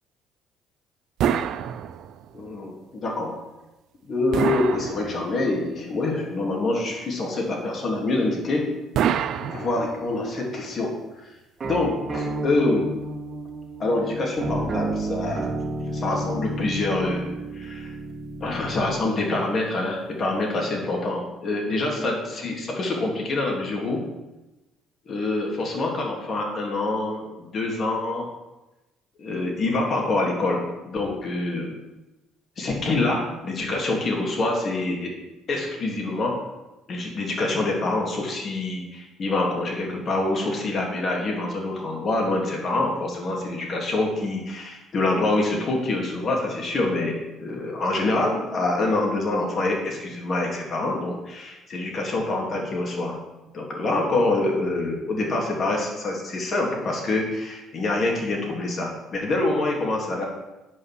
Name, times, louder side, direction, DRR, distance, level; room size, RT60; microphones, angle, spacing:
sound 1, 1.2-2.4 4.3-5.6 8.9-10.2, right 9 dB, 65° right, 0.4 m, -26 dB
voice 1, 2.3-3.3 4.1-8.7 9.4-10.9 11.2-11.3 11.7-12.9 13.8-15.5 15.9-17.9 18.4-24.1 25.1-28.3 29.2-31.7 32.6-35.1 35.5-36.4 36.9-53.2 53.5-60.2, left 2 dB, 50° left, -1 dB, 3.2 m, -26 dB
sound 2, 11.6-19.1, right 2 dB, 40° right, 2.3 m, -31 dB
8.1 x 5.6 x 7.9 m, 1.0 s
supercardioid pair, 70°, 0 cm